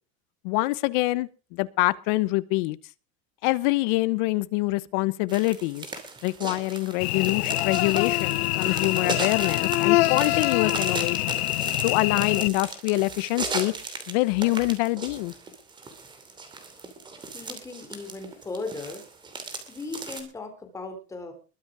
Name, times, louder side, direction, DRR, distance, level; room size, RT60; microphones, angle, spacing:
voice 1, 0.4-2.8 3.4-5.9 6.2-11.4 11.8-13.7 14.1-15.3, left 21 dB, 50° left, 17 dB, 1.0 m, -25 dB
sound 1, 5.3-20.2, right 4 dB, 15° right, 2.8 m, -37 dB
Cricket / Buzz, 7.0-12.5, left 18 dB, 75° left, 0.8 m, -25 dB
voice 2, 17.3-19.0 19.7-21.3, left 3 dB, 10° left, 4 dB, 3.4 m, -37 dB
21.5 x 8.3 x 4.9 m, 0.35 s
supercardioid pair, 170°, 31 cm